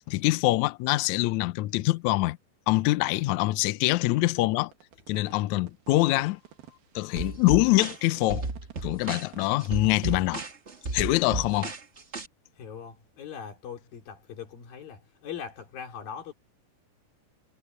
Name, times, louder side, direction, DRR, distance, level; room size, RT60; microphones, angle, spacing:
voice 1, 0.1-2.4 2.7-4.7 5.1-6.4 6.9-8.5 8.8-10.4 10.9-11.7, left 19 dB, 90° left, 1.6 m, -24 dB
sound 1, 3.1-10.5, right 12 dB, 85° right, 3.4 m, -50 dB
sound 2, 7.2-12.3, right 3 dB, 65° right, 0.6 m, -34 dB
voice 2, 12.6-16.3, left 7 dB, 70° left, 5.3 m, -41 dB
omnidirectional pair, 4.2 m